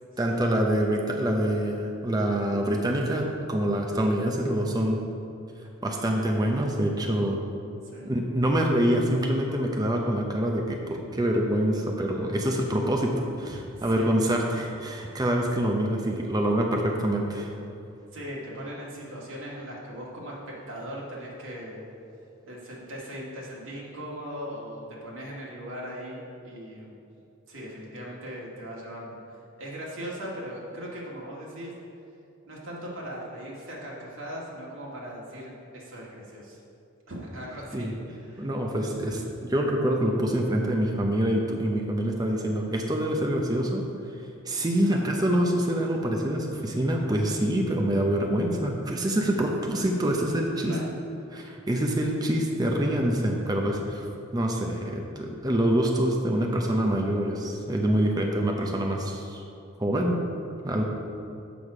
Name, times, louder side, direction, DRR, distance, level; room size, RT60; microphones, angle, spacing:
voice 1, 0.2-5.0 5.8-7.4 8.0-17.5 37.7-37.9 38.4-39.1 39.4-43.8 44.5-50.8 51.3-54.0 54.3-59.4 59.8-60.2 60.6-60.8, right 1 dB, 20° right, 1 dB, 0.6 m, -26 dB
voice 2, 13.4-14.1 18.1-21.9 22.5-27.0 27.5-29.2 29.6-31.7 32.5-36.6 37.1-38.6 38.9-39.2 44.8-45.0 50.7-50.8 53.6-53.8, equal, 70° right, -4 dB, 1.8 m, -39 dB
7.1 x 6.3 x 4.9 m, 2.6 s
head